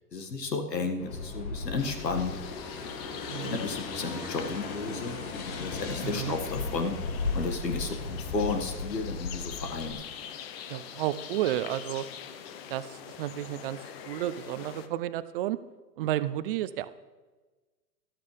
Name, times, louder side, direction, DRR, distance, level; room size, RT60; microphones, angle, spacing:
voice 1, 0.1-2.4 3.4-5.2 5.6-6.9 7.3-10.1, left 4 dB, 85° left, 4 dB, 2.0 m, -33 dB
sound 1, 1.0-9.9, left 3 dB, 60° left, 2.1 m, -36 dB
sound 2, 1.8-14.9, left 8 dB, 40° left, 0.9 m, -44 dB
voice 2, 6.0-6.3 10.7-12.1 12.7-13.8 14.0-15.6 16.0-16.9, right 13 dB, 35° right, 15 dB, 0.6 m, -31 dB
13.0 x 13.0 x 3.4 m, 1.3 s
hypercardioid pair, 125°, 48 cm